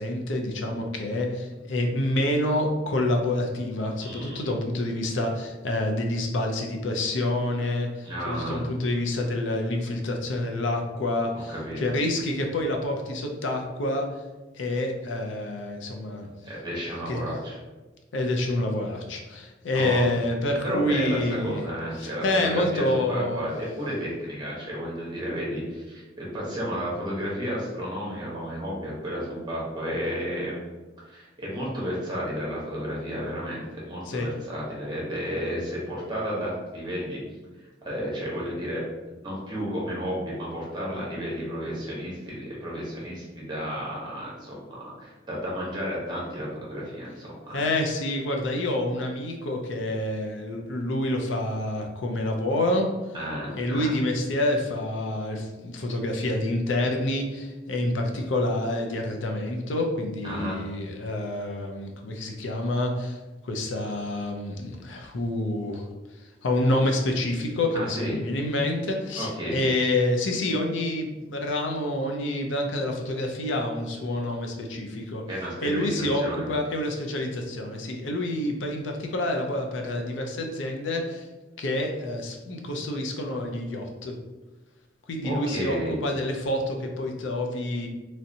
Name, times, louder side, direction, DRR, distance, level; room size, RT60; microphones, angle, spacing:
voice 1, 0.0-14.1 14.5-16.3 17.1-17.2 18.1-21.6 22.0-23.5 34.1-34.3 47.5-52.9 53.5-63.2 63.4-65.9 66.4-75.2 75.6-76.2 76.5-81.3 81.6-84.1 85.1-87.9, left 1 dB, 90° left, 2 dB, 0.5 m, -27 dB
voice 2, 4.0-4.5 8.0-8.7 11.5-11.9 16.4-17.6 19.7-20.1 20.6-30.7 31.0-37.2 37.8-38.8 39.2-47.6 53.1-53.9 60.2-60.6 67.7-68.2 69.1-69.6 75.3-76.6 85.2-85.9, equal, 25° right, -5 dB, 0.9 m, -32 dB
3.2 x 2.7 x 2.7 m, 1.2 s
head